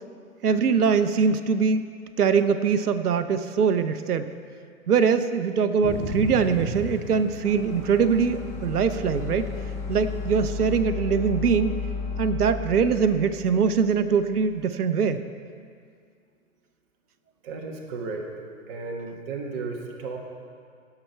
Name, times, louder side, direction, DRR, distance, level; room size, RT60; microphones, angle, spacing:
voice 1, 0.4-1.9 2.2-4.3 4.9-9.5 9.9-11.7 12.2-15.2, right 6 dB, 90° right, 10 dB, 0.7 m, -22 dB
Thunder / Rain, 5.8-10.8, right 1 dB, 5° right, 0.7 m, -36 dB
sound 1, 7.4-14.5, left 5 dB, 20° left, 0.8 m, -34 dB
voice 2, 17.4-18.3 18.7-20.2, right 4 dB, 40° right, 1 dB, 1.4 m, -34 dB
16.5 x 5.7 x 4.5 m, 2.2 s
hypercardioid pair, 135°, 44 cm